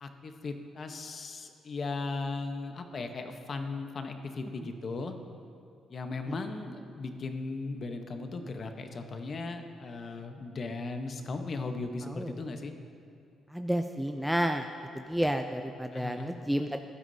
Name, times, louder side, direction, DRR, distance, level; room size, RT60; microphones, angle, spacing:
voice 1, 0.0-5.1 5.9-12.7 15.9-16.3, left 3 dB, 45° left, 6 dB, 1.0 m, -37 dB
voice 2, 12.0-12.4 13.5-14.7 14.9-16.8, equal, ahead, 5 dB, 0.4 m, -31 dB
15.5 x 11.0 x 2.8 m, 2.5 s
cardioid pair, 90°, 0 cm